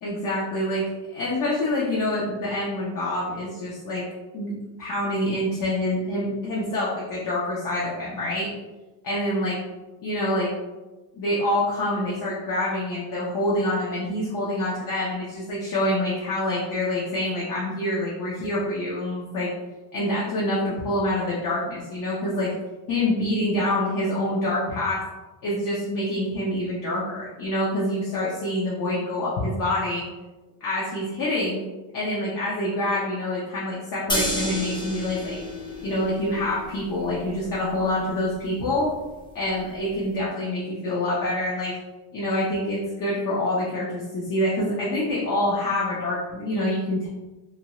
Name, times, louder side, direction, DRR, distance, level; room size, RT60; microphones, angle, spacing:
voice 1, 0.0-4.0 4.3-4.5 4.8-8.5 9.0-9.6 10.0-10.5 11.1-19.5 19.9-22.5 22.9-25.0 25.4-30.0 30.6-31.6 31.9-35.4 35.8-38.9 39.3-41.8 42.1-47.1, left 1 dB, 50° left, -6 dB, 0.7 m, -26 dB
sound 1, 34.1-40.1, equal, 10° left, 0.5 m, -33 dB
2.6 x 2.2 x 2.9 m, 1.1 s
cardioid pair, 120°, 43 cm